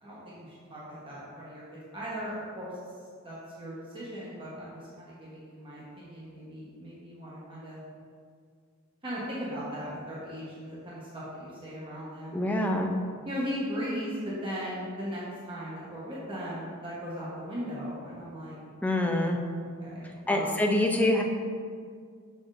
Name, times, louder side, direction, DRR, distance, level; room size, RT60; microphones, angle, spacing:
voice 1, 0.0-2.7 3.2-7.8 9.0-12.8 13.2-18.6 18.9-19.1 19.8-20.6, equal, 25° right, -8 dB, 1.1 m, -38 dB
voice 2, 12.3-12.9 18.8-19.4 20.3-21.2, left 1 dB, 5° left, 1 dB, 0.5 m, -25 dB
6.3 x 5.9 x 2.6 m, 2.1 s
head